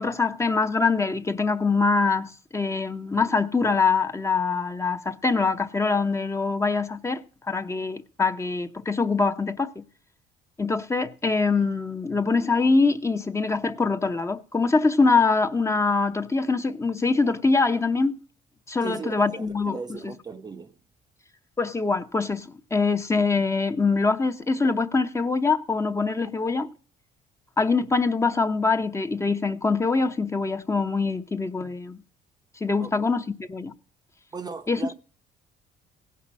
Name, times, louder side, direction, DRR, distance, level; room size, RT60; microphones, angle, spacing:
voice 1, 0.0-9.8 10.6-18.2 18.7-20.1 21.6-26.7 27.6-32.0 32.6-33.7 34.7-34.8, left 4 dB, 15° left, 0.7 m, -24 dB
voice 2, 18.8-20.7 32.8-33.0 34.3-34.9, right 4 dB, 25° right, 0.6 m, -37 dB
16.5 x 5.6 x 6.2 m
cardioid pair, 110°, 17 cm